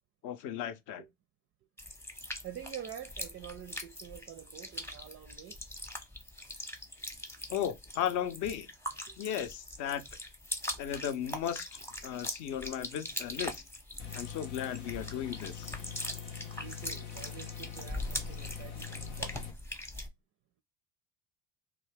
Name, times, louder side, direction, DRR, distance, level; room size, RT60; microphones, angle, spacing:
voice 1, 0.2-1.0 7.5-8.7 9.2-10.0 10.8-13.6 14.1-15.8, left 10 dB, 50° left, 0.6 m, -35 dB
sound 1, 1.8-20.1, left 1 dB, 5° left, 0.7 m, -42 dB
voice 2, 2.4-5.6 9.1-9.2 16.6-19.5, right 10 dB, 35° right, 0.4 m, -47 dB
sound 2, 14.0-19.5, left 8 dB, 85° left, 0.8 m, -43 dB
2.7 x 2.3 x 3.3 m
hypercardioid pair, 70°, 41 cm